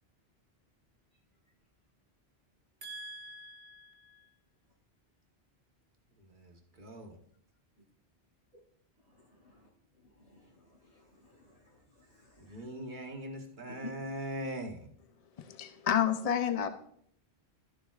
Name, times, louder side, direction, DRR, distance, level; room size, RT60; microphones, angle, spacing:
voice 1, 2.8-4.3 6.2-7.2 12.4-14.9, equal, 50° right, 1.3 m, -42 dB
voice 2, 10.2-10.7 11.0-12.6 13.8-13.9, left 1 dB, 80° left, 4.3 m, -52 dB
voice 3, 15.4-16.7, left 9 dB, 45° left, 0.6 m, -29 dB
13.5 x 6.7 x 2.4 m
omnidirectional pair, 1.1 m